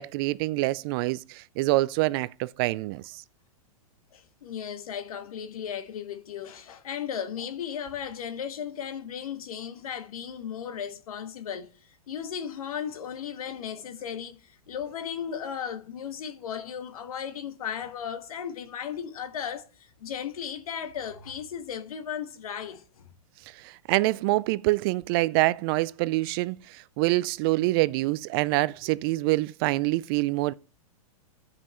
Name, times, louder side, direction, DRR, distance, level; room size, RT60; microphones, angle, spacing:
voice 1, 0.0-3.2 23.4-30.5, right 20 dB, 40° right, 0.4 m, -26 dB
voice 2, 4.1-23.1, left 8 dB, 80° left, 1.4 m, -36 dB
14.0 x 5.6 x 3.2 m
hypercardioid pair, 135°, 18 cm